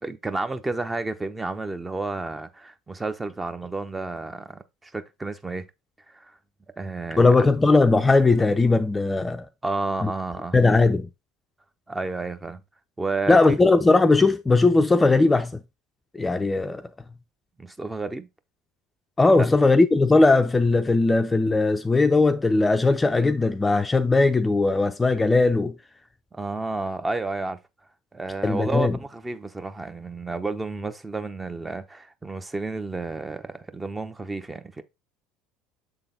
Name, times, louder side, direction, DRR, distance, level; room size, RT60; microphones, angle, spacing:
voice 1, 0.0-5.6 6.1-6.3 6.8-7.4 9.6-10.6 11.9-12.6 13.0-13.6 17.6-18.3 26.3-27.6 28.1-34.8, right 3 dB, 15° right, 0.8 m, -31 dB
voice 2, 7.2-9.5 10.0-10.1 10.5-11.1 13.3-15.6 16.1-16.8 19.2-25.7 28.4-29.0, left 3 dB, 20° left, 0.5 m, -19 dB
6.8 x 3.9 x 3.8 m
hypercardioid pair, 75°, 0 cm